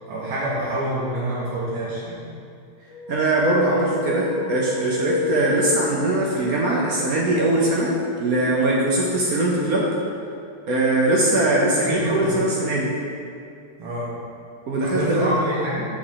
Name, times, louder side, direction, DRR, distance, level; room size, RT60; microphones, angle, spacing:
voice 1, 0.1-2.3 11.8-12.4 13.8-14.1 14.8-15.9, right 1 dB, 80° right, -9 dB, 1.8 m, -27 dB
sound 1, 2.9-6.5, left 2 dB, 70° left, 1.4 m, -29 dB
voice 2, 3.1-7.9 8.2-9.9 10.7-12.9 14.7-15.4, right 2 dB, 65° right, -4 dB, 0.9 m, -21 dB
4.8 x 3.6 x 5.6 m, 2.4 s
omnidirectional pair, 2.3 m